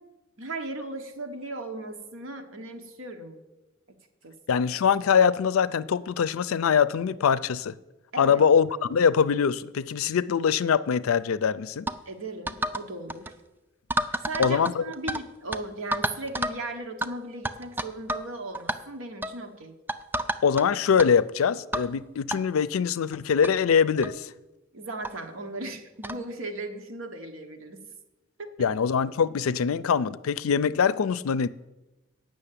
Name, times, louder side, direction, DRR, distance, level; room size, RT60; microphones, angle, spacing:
voice 1, 0.4-3.4 4.2-4.7 8.1-8.4 12.1-13.3 14.2-19.7 24.7-27.8 28.4-28.7, right 2 dB, 75° right, 1.3 m, -37 dB
voice 2, 4.5-7.7 8.2-11.9 14.4-14.8 20.4-24.3 28.6-31.5, left 6 dB, 85° left, 0.4 m, -23 dB
sound 1, 11.9-12.0 12.5-12.8 13.1-13.3 13.9-15.2 15.5-15.6 15.9-16.6 17.0-17.1 17.5-18.3 18.5-18.8 19.2-19.4 19.9-20.6 21.0-21.1 21.7-21.9 22.3-22.4 23.1-23.2 23.4-23.5 24.0-24.2 25.0-25.1 26.0-26.2, right 1 dB, 10° right, 0.3 m, -30 dB
8.8 x 6.3 x 8.4 m
head